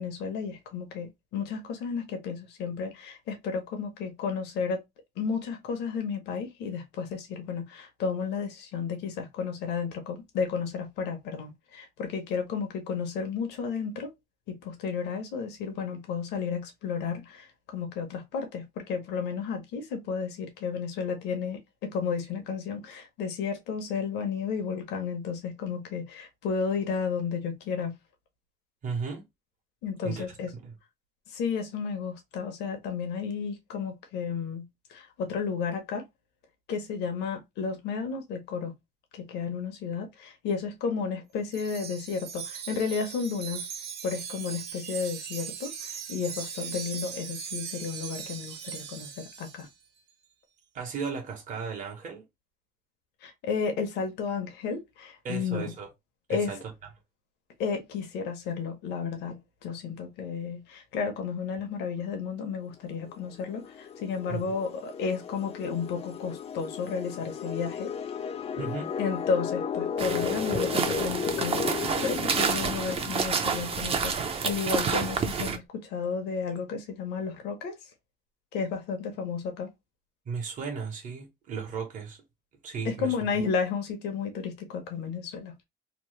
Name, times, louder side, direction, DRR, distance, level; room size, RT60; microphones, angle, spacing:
voice 1, 0.0-4.8 5.2-14.1 14.5-17.5 17.7-27.9 29.8-30.5 31.3-36.0 36.7-38.7 39.1-43.7 44.0-49.7 53.2-55.7 56.3-56.5 57.6-67.9 69.0-77.7 78.5-79.7 82.8-85.5, left 5 dB, 80° left, 0.8 m, -32 dB
voice 2, 28.8-29.2 30.0-30.7 50.7-52.2 55.2-55.9 56.3-56.7 64.3-64.4 68.6-68.9 80.2-82.2 82.6-83.4, right 5 dB, 50° right, 1.1 m, -35 dB
Wind chime, 41.5-49.7, right 8 dB, 75° right, 0.7 m, -39 dB
sound 1, 63.1-73.6, left 7 dB, 35° left, 0.4 m, -34 dB
sound 2, 70.0-75.6, right 5 dB, 35° right, 0.6 m, -29 dB
3.0 x 2.1 x 3.1 m
cardioid pair, 110°, 17 cm